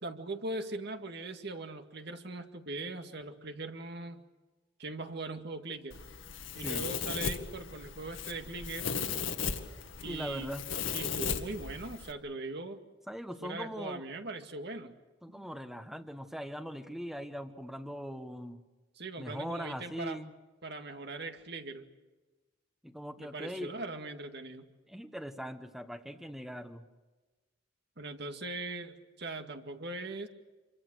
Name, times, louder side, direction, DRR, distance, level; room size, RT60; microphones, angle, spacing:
voice 1, 0.0-4.2 4.8-6.0 6.5-8.9 10.0-10.5 10.9-12.8 13.4-14.9 15.3-15.5 19.0-20.2 20.6-21.9 23.2-24.7 28.0-30.3, right 2 dB, 55° right, 5 dB, 2.1 m, -40 dB
Domestic sounds home sounds, 5.9-12.1, left 6 dB, 70° left, 2.0 m, -37 dB
voice 2, 10.0-10.7 13.1-14.0 15.2-18.6 19.2-20.3 22.8-23.7 24.9-26.9, equal, ahead, 8 dB, 1.3 m, -40 dB
27.5 x 24.0 x 6.5 m, 1.2 s
head